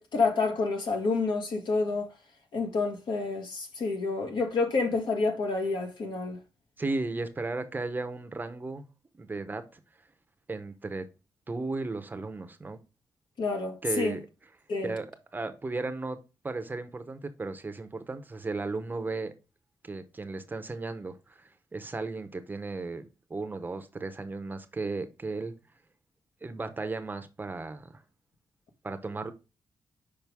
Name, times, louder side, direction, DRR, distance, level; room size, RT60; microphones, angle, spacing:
voice 1, 0.0-2.1 2.5-6.4 13.4-14.2 14.7-14.9, left 3 dB, 70° left, 1.5 m, -28 dB
voice 2, 6.8-8.8 9.2-9.8 10.5-11.1 11.5-12.8 13.8-14.2 14.8-15.1 15.3-16.2 16.4-19.3 19.8-23.0 23.3-25.5 26.4-28.0 28.8-29.3, right 3 dB, 25° right, 0.7 m, -35 dB
6.0 x 5.0 x 3.4 m
cardioid pair, 110°, 8 cm